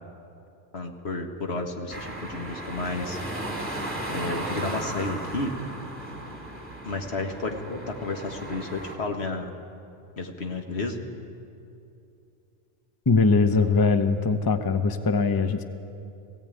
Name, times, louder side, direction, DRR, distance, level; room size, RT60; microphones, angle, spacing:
voice 1, 0.7-3.2 4.1-5.5 6.8-9.5 10.2-11.0, left 3 dB, 65° left, 4 dB, 1.8 m, -31 dB
sound 1, 1.9-9.0, right 1 dB, 10° right, 2.9 m, -36 dB
voice 2, 13.1-15.6, left 4 dB, 25° left, 8 dB, 0.7 m, -21 dB
18.0 x 16.5 x 9.0 m, 2.6 s
omnidirectional pair, 1.2 m